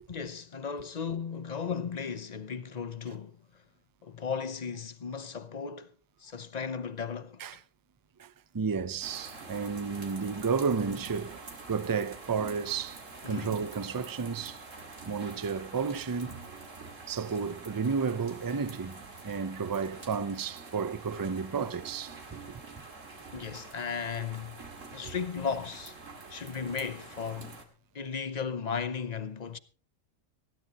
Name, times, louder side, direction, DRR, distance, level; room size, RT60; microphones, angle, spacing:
voice 1, 0.1-3.6 4.0-5.9 6.2-7.4 13.2-13.6 23.3-26.0 26.3-27.6 27.9-29.6, left 6 dB, 35° left, 0.8 m, -36 dB
voice 2, 8.2-14.6 15.1-16.5 17.1-22.4, right 5 dB, 35° right, 0.3 m, -32 dB
sound 1, 9.0-27.6, right 3 dB, 70° right, 2.5 m, -46 dB
19.5 x 15.5 x 3.0 m
omnidirectional pair, 1.4 m